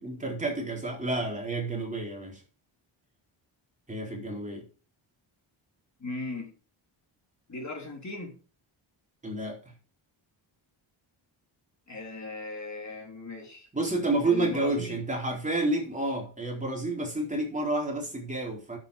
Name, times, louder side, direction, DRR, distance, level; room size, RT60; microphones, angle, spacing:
voice 1, 0.0-2.4 3.9-4.6 9.2-9.6 13.7-18.8, right 2 dB, 15° right, 4.2 m, -30 dB
voice 2, 6.0-6.5 7.5-8.3 11.9-13.7 14.2-15.0, left 2 dB, 35° left, 3.5 m, -37 dB
10.5 x 8.3 x 5.1 m
cardioid pair, 110°, 49 cm